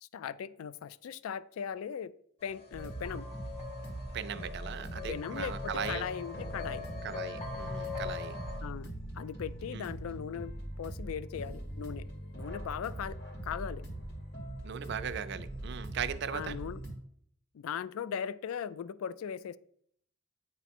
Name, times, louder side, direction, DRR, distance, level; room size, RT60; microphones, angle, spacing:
voice 1, 0.0-2.1 2.4-3.3 5.1-6.8 8.6-12.1 12.3-13.2 13.4-13.9 16.3-16.8 17.5-19.6, left 8 dB, 80° left, 18 dB, 0.3 m, -39 dB
sound 1, 2.4-8.6, left 4 dB, 30° left, 1.3 m, -42 dB
sound 2, 2.7-17.0, right 1 dB, 55° left, 1.7 m, -42 dB
voice 2, 4.1-6.0 7.0-8.4 9.7-9.9 14.6-16.6, right 7 dB, 50° right, 10 dB, 0.4 m, -38 dB
8.9 x 3.1 x 5.9 m, 0.67 s
head